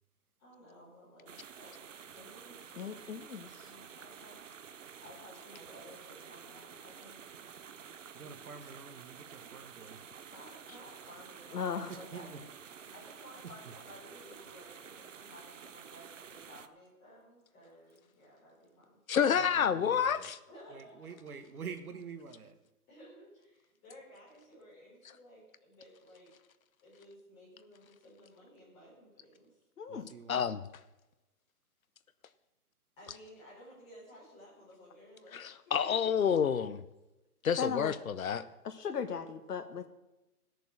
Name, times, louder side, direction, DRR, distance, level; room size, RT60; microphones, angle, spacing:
voice 1, 0.4-4.4 5.0-9.3 10.3-12.5 12.8-19.0 20.5-21.4 22.9-26.3 26.8-29.6 33.0-35.9, equal, 10° left, -8 dB, 4.4 m, -56 dB
sound 1, 1.3-16.7, right 7 dB, 55° right, 0.7 m, -51 dB
voice 2, 2.8-3.6 11.5-11.9 29.8-30.1 37.6-37.9 38.6-39.9, left 6 dB, 85° left, 7 dB, 1.5 m, -37 dB
voice 3, 8.1-10.0 11.9-12.3 19.3-19.5 19.7-20.3 20.7-22.5 29.9-30.4, right 6 dB, 70° right, 7 dB, 1.6 m, -47 dB
voice 4, 19.1-20.4 30.3-30.6 35.3-36.8 37.4-38.5, left 7 dB, 65° left, 14 dB, 0.8 m, -29 dB
15.5 x 6.9 x 6.3 m, 1.0 s
hypercardioid pair, 180°, 45 cm